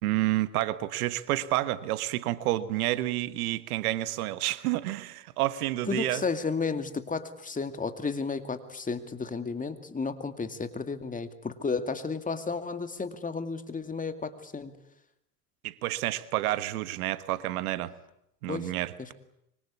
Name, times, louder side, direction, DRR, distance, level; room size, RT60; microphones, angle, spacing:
voice 1, 0.0-6.2 15.6-17.9 18.4-19.1, right 16 dB, 70° right, 14 dB, 1.5 m, -29 dB
voice 2, 5.9-14.7 18.5-18.7, left 4 dB, 15° left, 9 dB, 2.4 m, -33 dB
25.5 x 24.0 x 8.5 m, 0.79 s
hypercardioid pair, 85°, 46 cm